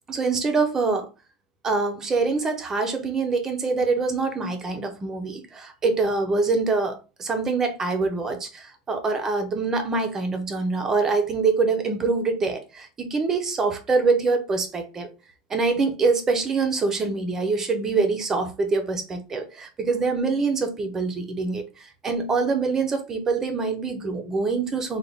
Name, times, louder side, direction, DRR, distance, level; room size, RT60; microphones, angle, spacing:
voice 1, 0.1-1.1 1.6-15.1 15.5-25.0, right 4 dB, 15° right, 0.4 m, -25 dB
3.8 x 2.2 x 3.3 m
supercardioid pair, 180°, 3 cm